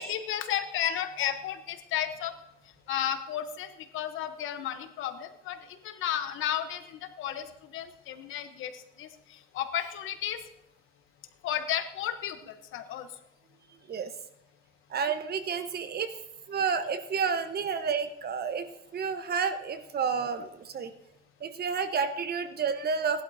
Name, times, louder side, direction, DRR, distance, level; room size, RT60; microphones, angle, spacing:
voice 1, 0.0-2.3 2.9-10.4 11.4-13.1, left 10 dB, 85° left, 10 dB, 1.0 m, -33 dB
voice 2, 14.9-16.1 16.5-18.7 18.9-20.9 21.4-23.2, right 6 dB, 50° right, 9 dB, 1.1 m, -30 dB
18.5 x 11.5 x 2.7 m, 0.83 s
cardioid pair, 90°, 20 cm